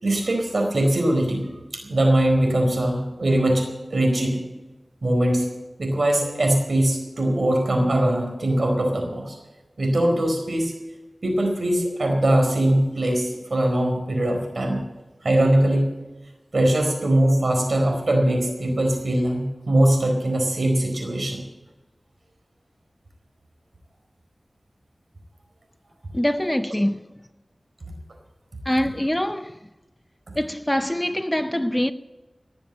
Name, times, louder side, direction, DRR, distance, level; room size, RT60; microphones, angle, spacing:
voice 1, 0.0-1.5 1.7-4.4 5.0-5.5 5.8-9.4 9.8-10.8 11.2-14.8 15.2-15.9 16.5-21.4, right 1 dB, 75° right, 4.4 m, -21 dB
voice 2, 26.1-27.0 28.7-29.6 30.4-31.9, left 1 dB, 15° left, 0.6 m, -24 dB
18.5 x 7.3 x 8.6 m
wide cardioid pair, 45°, 0 cm